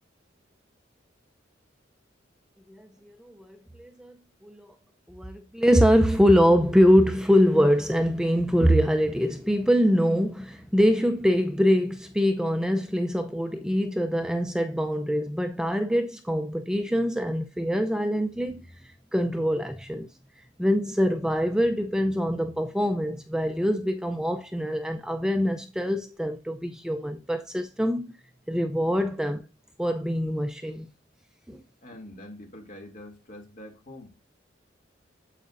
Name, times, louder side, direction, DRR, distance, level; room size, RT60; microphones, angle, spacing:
voice 1, 2.7-4.1 4.4-4.7 5.1-18.7 19.1-20.1 20.6-28.1 28.5-29.4 29.8-30.9 31.5-31.6, equal, 5° right, 0.5 m, -24 dB
voice 2, 31.8-34.1, left 1 dB, 45° left, 2.6 m, -44 dB
9.2 x 7.9 x 2.6 m
head